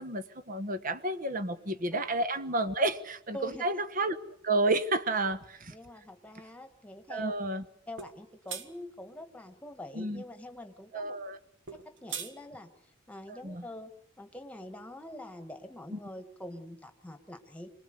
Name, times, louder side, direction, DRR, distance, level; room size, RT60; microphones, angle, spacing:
voice 1, 0.0-4.2 4.4-5.7 7.1-7.6 9.9-10.2 10.9-11.4 13.3-13.7 15.9-16.0, right 2 dB, 40° right, 12 dB, 1.2 m, -31 dB
voice 2, 3.3-3.7 5.7-7.3 7.9-11.1 11.8-12.7 13.1-13.9 14.2-17.7, left 1 dB, 5° left, 7 dB, 1.8 m, -45 dB
sound 1, 8.0-8.1 8.5-8.7 11.7-12.3, right 7 dB, 60° right, 1.8 m, -38 dB
26.0 x 20.0 x 6.8 m, 0.72 s
head